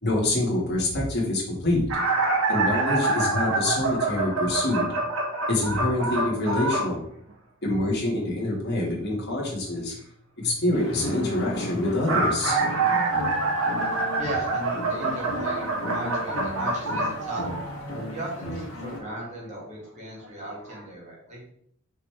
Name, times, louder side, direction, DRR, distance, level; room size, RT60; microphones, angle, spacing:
voice 1, 0.0-2.0 2.5-4.9 5.5-7.0 7.6-9.9 10.4-12.6, left 1 dB, 50° left, -3 dB, 2.1 m, -26 dB
sound 1, 1.9-6.9 11.8-17.9 19.0-19.2 20.2-20.3 20.7-20.8, right 3 dB, 75° right, 1.5 m, -26 dB
sound 2, 10.7-19.0, left 1 dB, 80° left, 1.5 m, -35 dB
voice 2, 14.2-17.4 18.1-21.4, right 1 dB, 35° right, -4 dB, 2.2 m, -37 dB
5.8 x 4.8 x 3.5 m, 0.66 s
head